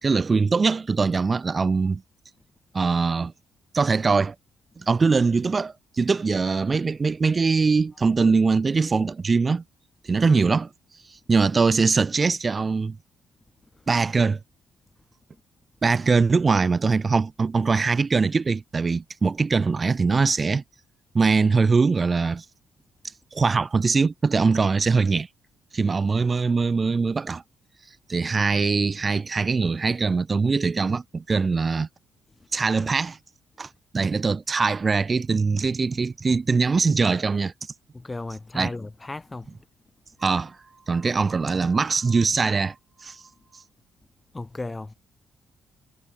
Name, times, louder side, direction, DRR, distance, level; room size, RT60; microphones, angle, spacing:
voice 1, 0.0-2.0 2.7-3.3 3.7-4.3 4.8-9.6 10.0-10.7 11.0-13.0 13.9-14.4 15.8-20.6 21.1-22.5 23.3-25.3 25.7-27.4 28.1-31.9 32.5-33.2 33.6-37.5 38.5-38.7 40.2-40.6 40.9-43.2 43.5-43.6, right 4 dB, 30° right, 2.6 m, -22 dB
voice 2, 37.9-39.5 44.3-44.9, left 2 dB, 20° left, 6.5 m, -34 dB
cardioid pair, 90°, 0 cm